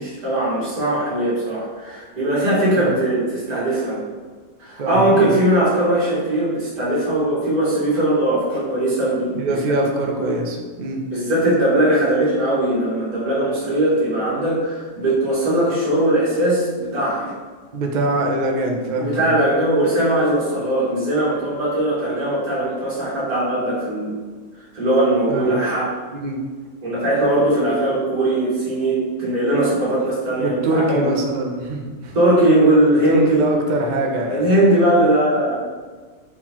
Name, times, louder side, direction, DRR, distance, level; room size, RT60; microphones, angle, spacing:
voice 1, 0.0-4.0 4.6-9.4 9.7-9.8 11.1-17.3 18.9-24.1 24.7-26.0 26.8-31.1 32.1-33.4 34.3-35.6, right 1 dB, 80° right, -8 dB, 2.2 m, -19 dB
voice 2, 4.8-5.3 9.3-11.0 17.7-19.4 25.3-25.5 26.2-26.4 30.4-32.1 33.1-34.4, right 2 dB, 60° right, 2 dB, 0.5 m, -23 dB
4.5 x 3.7 x 2.9 m, 1.5 s
omnidirectional pair, 1.6 m